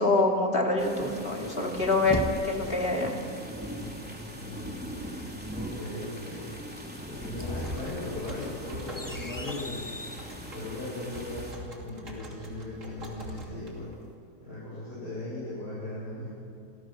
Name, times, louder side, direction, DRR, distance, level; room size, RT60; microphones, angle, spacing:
voice 1, 0.0-3.1, left 2 dB, 35° left, 1 dB, 3.1 m, -26 dB
sound 1, 0.8-11.5, equal, 5° right, 3.5 m, -41 dB
sound 2, 1.5-3.0 7.0-10.3, left 1 dB, 15° left, 1.0 m, -37 dB
voice 2, 4.3-6.5 7.1-9.9 10.5-13.9 14.4-16.3, left 2 dB, 75° left, -9 dB, 8.3 m, -38 dB
sound 3, 7.6-14.1, right 1 dB, 50° right, 3.2 m, -43 dB
28.0 x 24.5 x 6.4 m, 2.4 s
omnidirectional pair, 1.8 m